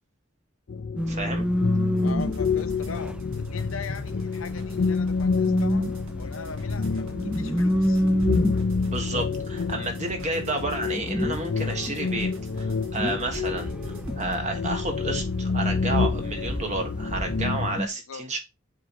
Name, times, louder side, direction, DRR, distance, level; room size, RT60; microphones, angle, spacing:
sound 1, 0.7-17.8, left 4 dB, 55° left, 0.4 m, -28 dB
sound 2, 1.0-17.9, equal, 5° right, 0.4 m, -30 dB
voice 1, 1.1-1.5 8.9-18.4, right 2 dB, 35° right, 1.4 m, -31 dB
voice 2, 2.0-5.9 6.2-8.0 18.1-18.2, left 5 dB, 85° left, 0.8 m, -40 dB
sound 3, 2.0-14.4, right 1 dB, 70° right, 1.6 m, -45 dB
7.7 x 3.1 x 4.1 m
head